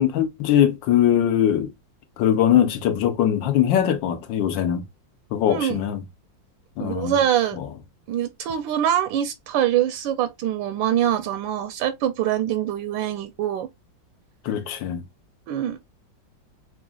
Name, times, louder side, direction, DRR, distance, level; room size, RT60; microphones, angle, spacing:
voice 1, 0.0-1.7 2.2-4.8 5.3-6.0 6.8-7.1 14.5-15.0, left 10 dB, 80° left, 1.5 m, -21 dB
voice 2, 5.5-5.8 6.8-7.6 8.1-13.7 15.5-15.8, right 10 dB, 80° right, 1.3 m, -24 dB
6.1 x 2.5 x 2.2 m
omnidirectional pair, 2.0 m